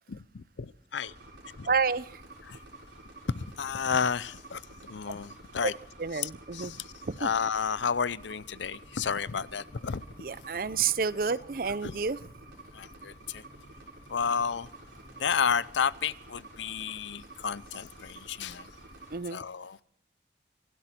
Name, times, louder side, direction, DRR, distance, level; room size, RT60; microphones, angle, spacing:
voice 1, 0.1-1.1 1.6-1.7 2.5-2.6 3.4-4.6 4.9-5.7 6.1-6.8 7.2-10.0 11.8-12.0 12.7-13.4 14.1-14.7 15.2-18.7 19.3-19.8, left 6 dB, 85° left, 0.6 m, -31 dB
sound 1, 1.0-19.1, right 2 dB, 85° right, 6.5 m, -50 dB
voice 2, 1.7-2.2 6.0-6.8 7.0-7.3 10.2-12.2 19.1-19.4, right 5 dB, 50° right, 0.5 m, -29 dB
sound 2, 8.8-15.7, equal, 10° right, 7.7 m, -59 dB
26.5 x 12.0 x 4.4 m
head